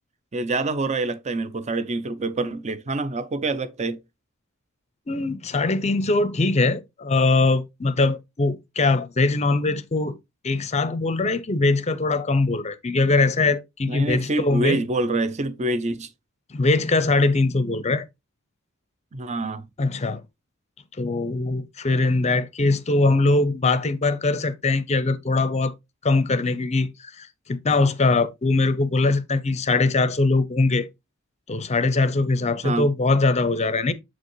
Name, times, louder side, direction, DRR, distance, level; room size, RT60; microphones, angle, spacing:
voice 1, 0.3-4.0 13.9-16.1 19.1-19.7 32.6-32.9, right 2 dB, 35° right, 0.6 m, -26 dB
voice 2, 5.1-10.2 10.4-14.8 16.5-18.0 19.8-20.2 21.0-25.7 26.0-30.9 31.5-33.9, left 3 dB, 30° left, 0.6 m, -22 dB
7.4 x 4.8 x 3.1 m
head